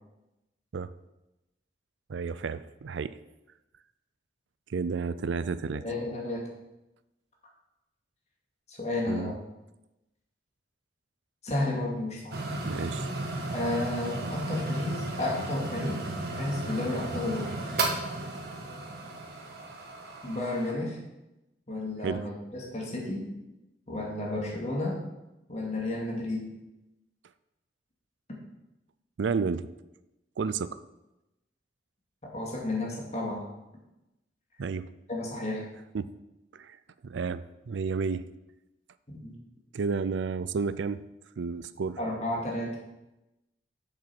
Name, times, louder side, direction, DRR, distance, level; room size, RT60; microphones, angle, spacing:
voice 1, 2.1-3.2 4.7-5.8 9.1-9.3 12.6-13.1 22.0-22.3 29.2-29.7 30.4-30.8 34.6-34.9 35.9-36.1 36.5-36.8 37.0-38.3 39.7-41.0 41.4-42.0, right 5 dB, 85° right, 15 dB, 0.4 m, -31 dB
voice 2, 5.8-6.5 8.7-9.4 11.4-12.4 13.5-16.1 16.4-17.5 20.2-21.0 21.7-23.4 23.9-25.1 25.5-26.6 32.3-33.5 35.1-35.7 39.1-39.4 42.0-42.8, left 2 dB, 35° left, -2 dB, 2.3 m, -32 dB
sound 1, 12.3-20.7, right 2 dB, 60° right, 1.5 m, -34 dB
7.4 x 7.4 x 5.9 m, 0.97 s
head